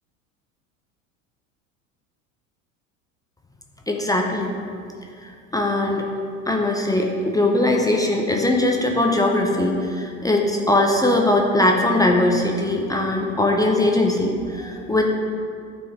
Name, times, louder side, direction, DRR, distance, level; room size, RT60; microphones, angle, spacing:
voice 1, 3.9-4.5 5.2-6.0 6.5-15.0, left 1 dB, 10° left, 1 dB, 0.6 m, -20 dB
9.8 x 4.4 x 3.5 m, 2.4 s
hypercardioid pair, 85°, 42 cm